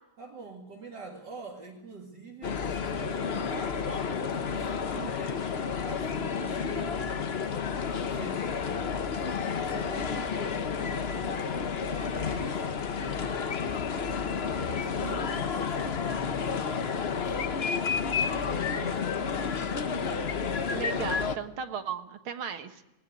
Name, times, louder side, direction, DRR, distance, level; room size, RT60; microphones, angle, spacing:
voice 1, 0.2-7.7 8.0-17.4 17.7-20.2, right 3 dB, 55° right, -1 dB, 2.9 m, -45 dB
sound 1, 2.4-21.4, left 6 dB, 45° left, 0.8 m, -31 dB
voice 2, 15.0-15.3 20.7-22.8, right 7 dB, 85° right, 9 dB, 2.3 m, -36 dB
19.0 x 18.5 x 9.2 m, 0.93 s
omnidirectional pair, 2.2 m